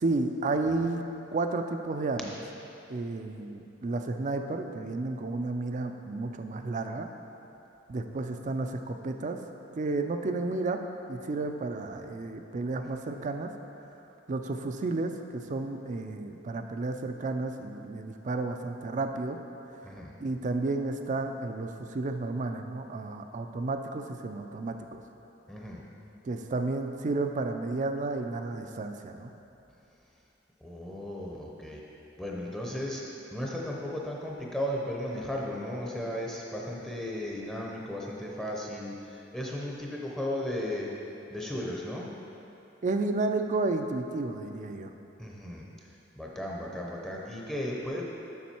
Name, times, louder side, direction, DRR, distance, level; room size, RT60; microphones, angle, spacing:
voice 1, 0.0-1.0 1.3-2.4 2.9-7.1 7.9-9.4 9.7-10.8 11.1-13.5 14.3-19.4 20.2-25.0 26.2-29.3 42.8-44.9, right 3 dB, 40° right, 6 dB, 0.4 m, -32 dB
voice 2, 25.5-25.8 30.6-31.8 32.2-33.0 33.3-40.9 41.3-42.1 45.2-45.6 46.2-48.0, left 1 dB, 5° left, -3 dB, 0.7 m, -35 dB
7.2 x 6.2 x 4.4 m, 2.9 s
head